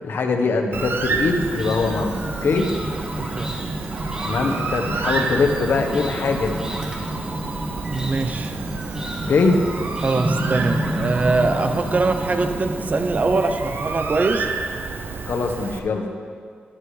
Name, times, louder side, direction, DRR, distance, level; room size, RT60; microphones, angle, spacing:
voice 1, 0.0-2.2 2.4-2.7 4.2-6.7 9.3-9.6 15.3-16.1, left 4 dB, 80° left, 4 dB, 1.1 m, -22 dB
Bird, 0.7-15.8, right 4 dB, 75° right, 0.7 m, -30 dB
sound 1, 1.4-13.4, right 1 dB, 20° right, 1.4 m, -30 dB
voice 2, 3.2-3.6 7.9-8.6 10.0-14.5, right 3 dB, 45° right, 7 dB, 0.8 m, -23 dB
17.5 x 10.0 x 3.3 m, 2.1 s
wide cardioid pair, 115°, 4 cm